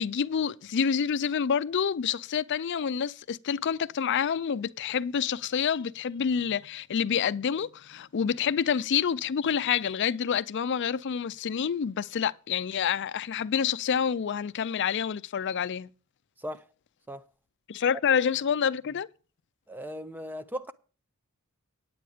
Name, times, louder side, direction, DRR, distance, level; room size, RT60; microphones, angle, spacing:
voice 1, 0.0-15.9 17.7-19.1, left 7 dB, 55° left, 0.4 m, -28 dB
voice 2, 19.7-20.7, equal, 10° right, 0.4 m, -37 dB
9.3 x 9.1 x 4.9 m
head